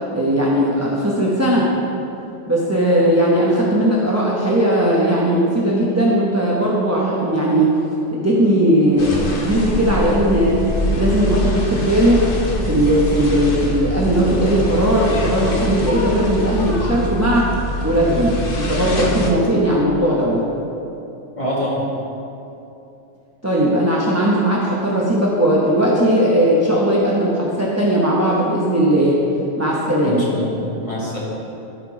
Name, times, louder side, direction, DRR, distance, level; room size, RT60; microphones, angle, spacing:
voice 1, 0.1-1.7 2.5-7.8 8.1-10.6 11.0-12.3 12.6-17.5 17.8-20.5 23.4-29.2 29.6-30.2, right 1 dB, 15° right, -5 dB, 0.8 m, -18 dB
sound 1, 9.0-19.3, left 1 dB, 50° left, 1.1 m, -24 dB
voice 2, 21.4-21.8 30.0-31.2, left 1 dB, 25° left, -7 dB, 2.0 m, -25 dB
12.5 x 4.4 x 4.9 m, 2.8 s
omnidirectional pair, 1.3 m